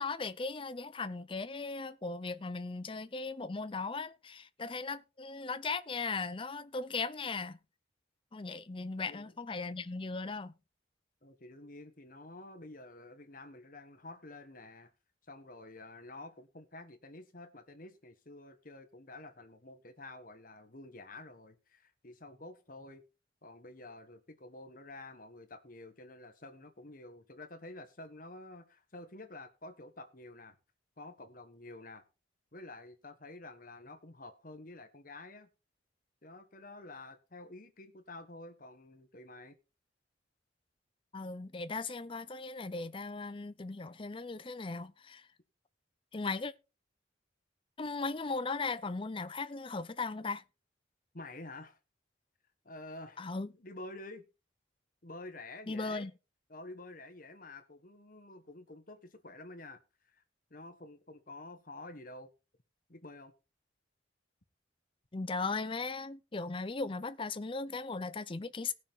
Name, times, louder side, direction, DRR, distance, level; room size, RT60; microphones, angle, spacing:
voice 1, 0.0-7.6 8.3-10.5 41.1-45.3 46.1-46.5 47.8-50.4 53.2-53.5 55.7-56.1 65.1-68.7, left 3 dB, 25° left, 0.5 m, -37 dB
voice 2, 11.2-14.9 15.3-23.0 23.4-30.5 31.0-32.1 32.5-35.5 36.2-39.6 51.1-51.8 52.6-53.2 53.5-54.2 55.0-56.1 56.5-59.8 60.1-60.2 60.5-62.3 62.9-63.3, left 2 dB, 45° left, 1.4 m, -49 dB
18.5 x 6.2 x 3.6 m
head